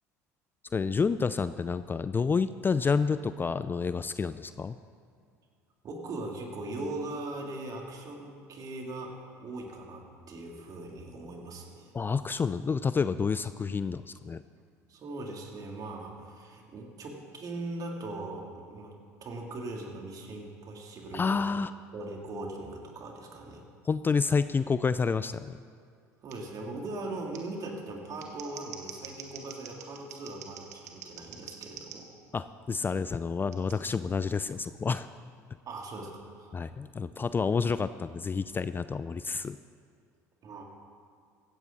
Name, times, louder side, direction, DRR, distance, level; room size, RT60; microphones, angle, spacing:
voice 1, 0.7-4.8 11.9-14.4 21.1-21.7 23.9-25.6 32.3-35.1 36.5-39.6, left 5 dB, 25° left, 14 dB, 0.4 m, -29 dB
voice 2, 5.8-11.9 14.9-18.9 19.2-21.4 21.9-23.6 26.2-32.1 35.7-36.6 40.4-40.6, right 2 dB, 45° right, 0 dB, 3.3 m, -40 dB
Scissors, 26.3-26.4 27.3-27.4 28.0-32.0 33.5-33.8, right 8 dB, 80° right, 1.4 m, -45 dB
16.0 x 15.0 x 4.2 m, 2.3 s
hypercardioid pair, 70°, 9 cm